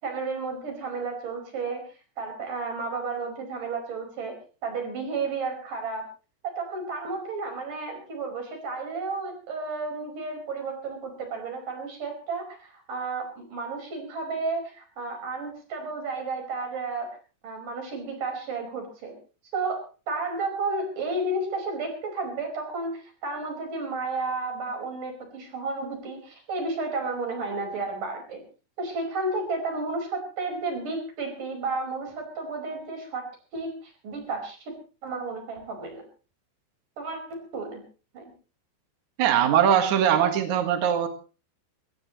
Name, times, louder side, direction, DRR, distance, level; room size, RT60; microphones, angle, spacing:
voice 1, 0.0-1.8 2.2-4.3 4.6-6.0 6.4-17.2 17.4-19.1 19.5-28.4 28.8-33.2 33.5-34.7 35.0-36.0 37.0-37.8 38.1-38.2, right 3 dB, 45° right, 5 dB, 6.4 m, -32 dB
voice 2, 39.2-41.1, right 9 dB, 60° right, 6 dB, 2.0 m, -21 dB
23.0 x 18.5 x 3.1 m, 0.36 s
omnidirectional pair, 5.7 m